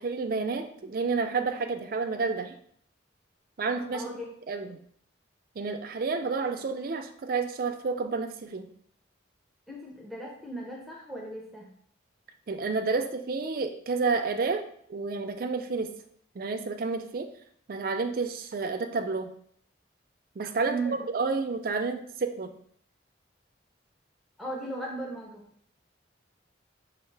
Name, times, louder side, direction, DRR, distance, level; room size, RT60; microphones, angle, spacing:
voice 1, 0.0-2.5 3.6-4.0 4.5-4.8 5.6-8.7 12.5-14.6 14.9-15.9 16.4-17.3 17.7-19.3 20.4-22.5, right 4 dB, 50° right, 7 dB, 0.4 m, -30 dB
voice 2, 3.9-4.3 9.7-11.7 20.7-21.0 24.4-25.4, right 2 dB, ahead, -3 dB, 0.6 m, -36 dB
5.5 x 2.4 x 3.3 m, 0.63 s
head